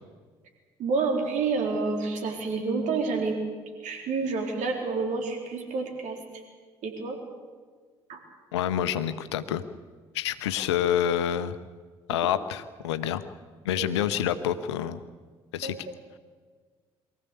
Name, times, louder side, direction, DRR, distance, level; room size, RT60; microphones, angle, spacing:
voice 1, 0.8-3.4 3.8-6.2 6.8-7.2 8.1-8.2 13.8-13.9 15.6-15.9, right 4 dB, 60° right, 3 dB, 3.8 m, -29 dB
voice 2, 8.5-9.6 10.1-11.6 12.1-13.2 13.6-15.0 15.5-15.8, left 10 dB, 75° left, 12 dB, 0.9 m, -27 dB
23.0 x 15.0 x 8.4 m, 1.5 s
figure-of-eight pair, 50°, 14 cm